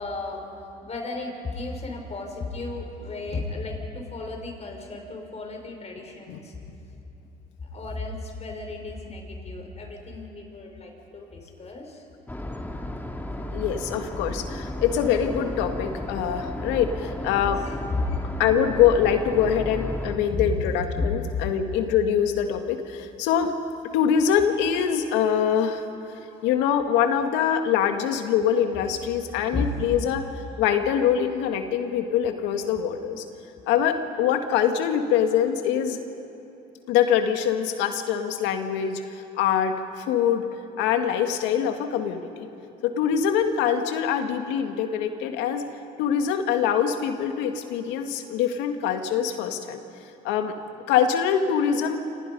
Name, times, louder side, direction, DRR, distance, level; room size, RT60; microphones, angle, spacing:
voice 1, 0.0-6.6 7.6-12.0 17.9-18.3 20.3-20.4 21.0-21.1 26.3-26.4 27.1-27.2 29.5-30.3, left 2 dB, 35° left, 2 dB, 5.9 m, -34 dB
sound 1, 12.3-20.2, left 1 dB, 10° left, 2.4 m, -33 dB
voice 2, 13.5-17.6 18.4-23.5 23.9-25.8 26.4-30.2 30.6-33.2 33.7-36.0 36.9-40.5 40.8-42.5 42.8-45.7 46.0-49.8 50.2-50.5 50.9-52.0, left 8 dB, 80° left, 6 dB, 2.0 m, -24 dB
27.0 x 27.0 x 5.5 m, 2.9 s
supercardioid pair, 75°, 18 cm